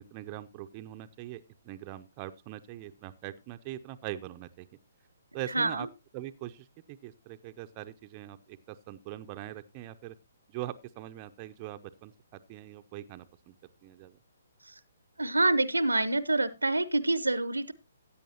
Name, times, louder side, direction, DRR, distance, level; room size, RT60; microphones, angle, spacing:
voice 1, 0.0-4.7 5.3-5.9 6.1-10.2 10.5-13.5 13.8-14.2, right 14 dB, 30° right, 8 dB, 0.6 m, -42 dB
voice 2, 5.5-5.9 14.7-14.8 15.2-17.7, right 2 dB, 90° right, 17 dB, 0.7 m, -27 dB
15.5 x 8.4 x 2.8 m, 0.24 s
figure-of-eight pair, 135°, 0 cm